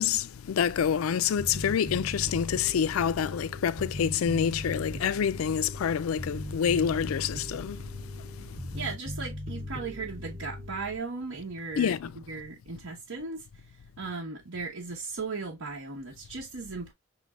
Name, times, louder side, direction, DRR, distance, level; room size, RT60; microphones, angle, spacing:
voice 1, 0.0-7.8 11.8-12.1, left 8 dB, 85° left, 0.4 m, -27 dB
Bass guitar, 1.4-11.0, left 1 dB, 35° right, 0.8 m, -39 dB
voice 2, 8.7-13.6 14.0-16.9, right 4 dB, 85° right, 1.0 m, -37 dB
5.9 x 3.3 x 2.4 m
head